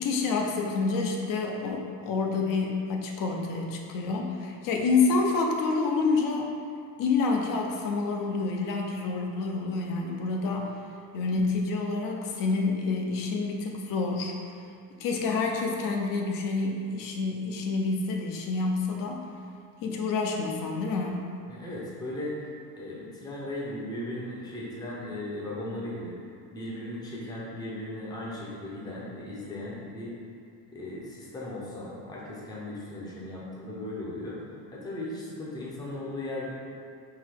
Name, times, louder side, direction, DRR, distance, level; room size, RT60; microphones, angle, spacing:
voice 1, 0.0-6.5 7.0-10.7 11.1-14.3 15.0-19.2 19.8-21.2, left 4 dB, 50° left, 1 dB, 0.6 m, -28 dB
voice 2, 21.5-22.5 22.7-26.2 26.5-30.2 30.7-36.5, left 1 dB, 10° left, -6 dB, 0.6 m, -37 dB
3.8 x 2.8 x 4.3 m, 2.4 s
cardioid pair, 150°, 43 cm